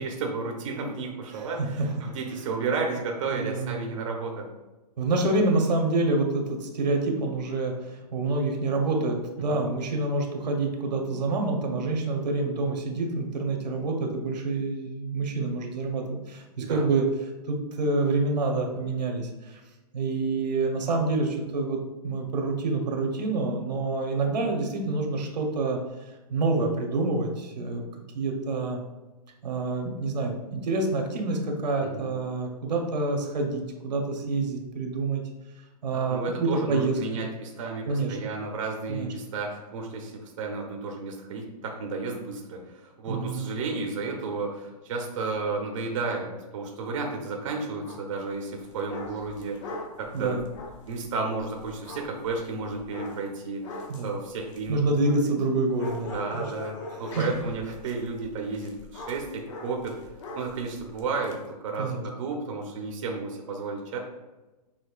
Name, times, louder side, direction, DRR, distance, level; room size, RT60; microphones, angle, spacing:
voice 1, 0.0-4.5 9.5-9.7 16.6-16.8 31.8-32.1 35.9-50.4 50.8-54.8 55.3-55.4 56.1-60.0 60.3-61.4 61.6-64.0, right 4 dB, 50° right, 1 dB, 0.8 m, -32 dB
voice 2, 1.3-2.1 3.3-3.9 5.0-19.6 19.9-25.8 26.3-27.8 28.1-28.8 29.4-35.2 35.8-37.2 37.9-38.2 38.9-39.1 43.1-43.5 50.1-50.4 53.9-54.2 54.7-56.4 57.0-57.2 61.8-62.0, right 3 dB, 80° right, 2 dB, 1.0 m, -27 dB
sound 1, 47.8-48.1 48.5-55.4 55.8-61.4, left 2 dB, 45° left, 0.8 m, -42 dB
6.2 x 3.0 x 2.4 m, 1.1 s
hypercardioid pair, 160°, 21 cm